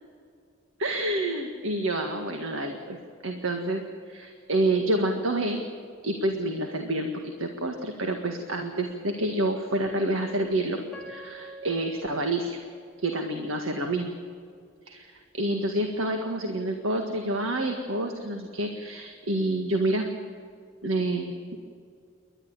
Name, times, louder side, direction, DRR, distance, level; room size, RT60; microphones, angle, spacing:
voice 1, 0.8-5.6 6.0-10.8 11.1-12.6 13.0-14.1 14.9-15.1 15.3-20.1 20.8-21.6, right 1 dB, 70° right, 4 dB, 1.8 m, -28 dB
Piano, 10.9-13.9 14.5-14.6 15.2-15.5, right 2 dB, ahead, 5.5 m, -47 dB
29.0 x 12.0 x 8.9 m, 2.3 s
head